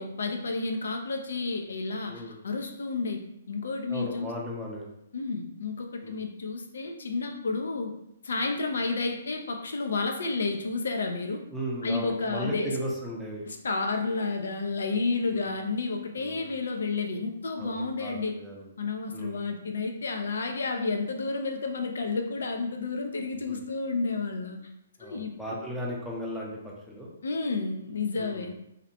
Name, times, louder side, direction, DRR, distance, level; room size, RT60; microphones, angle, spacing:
voice 1, 0.0-3.2 3.5-4.3 5.1-7.9 8.2-11.4 11.8-12.7 13.5-18.3 18.8-24.6 25.0-25.3 27.2-28.5, left 3 dB, 80° left, 3 dB, 0.4 m, -31 dB
voice 2, 2.1-2.4 3.9-4.9 6.0-6.2 11.5-13.4 15.3-15.5 16.2-16.5 17.6-18.7 19.1-19.5 23.5-23.6 25.0-26.5 26.9-27.1 28.2-28.5, equal, 5° right, -4 dB, 0.5 m, -36 dB
2.6 x 2.1 x 2.7 m, 0.81 s
hypercardioid pair, 155°, 0 cm